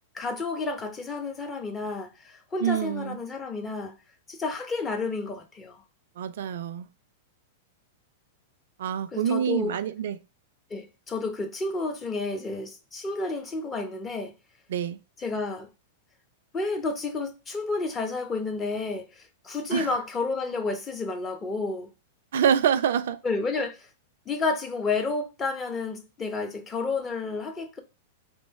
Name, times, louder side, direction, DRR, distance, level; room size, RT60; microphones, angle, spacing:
voice 1, 0.1-4.0 4.3-5.8 9.1-9.8 10.7-14.3 15.2-15.7 16.5-21.9 23.2-23.9 24.3-27.8, left 3 dB, 20° left, 0.7 m, -31 dB
voice 2, 2.6-3.2 6.2-6.9 8.8-10.2 14.7-15.0 19.7-19.9 22.3-23.2, right 8 dB, 65° right, 0.3 m, -26 dB
3.1 x 2.7 x 4.4 m
figure-of-eight pair, 100°, 0 cm